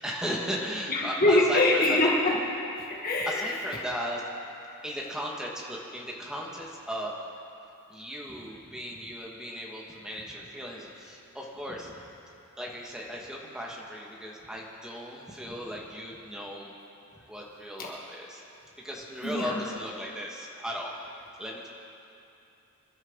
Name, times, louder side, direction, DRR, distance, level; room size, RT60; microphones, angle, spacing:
voice 1, 0.0-2.0 3.3-4.3 4.8-7.1 7.9-12.1 12.6-16.7 17.1-18.4 18.8-21.0 21.4-21.7, equal, 5° right, -3 dB, 2.1 m, -36 dB
voice 2, 0.9-2.4 2.9-3.6 19.2-19.6, left 1 dB, 40° left, -3 dB, 2.0 m, -24 dB
27.0 x 12.5 x 4.1 m, 2.7 s
head